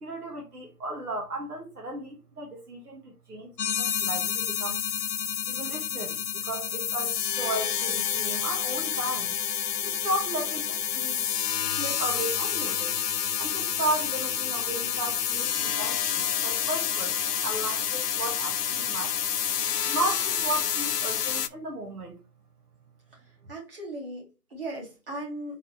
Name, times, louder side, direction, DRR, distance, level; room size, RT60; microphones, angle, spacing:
voice 1, 0.0-4.8 5.5-9.3 9.8-11.2 11.8-12.9 13.4-19.2 19.9-22.2, right 2 dB, 75° right, 1.4 m, -34 dB
sound 1, 3.6-21.5, left 8 dB, 85° left, 0.6 m, -29 dB
voice 2, 23.1-25.6, right 1 dB, 35° right, 2.2 m, -38 dB
4.0 x 3.9 x 3.1 m
figure-of-eight pair, 165°, 46 cm